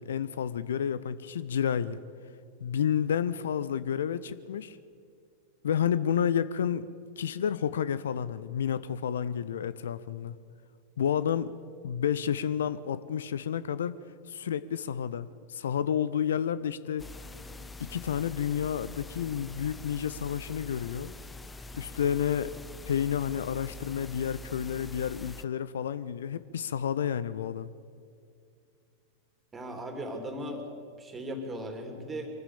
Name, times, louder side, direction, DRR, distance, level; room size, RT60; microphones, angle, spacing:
voice 1, 0.0-2.0 2.6-4.8 5.6-10.4 11.0-11.5 11.8-14.0 14.3-17.0 17.8-21.1 21.7-22.5 22.9-27.7, left 8 dB, 65° left, 16 dB, 0.6 m, -30 dB
sound 1, 17.0-25.4, left 2 dB, 10° left, 0.7 m, -45 dB
voice 2, 29.5-30.7 31.0-32.3, equal, 15° right, 5 dB, 3.2 m, -37 dB
24.0 x 14.0 x 8.4 m, 2.3 s
figure-of-eight pair, 90°, 0 cm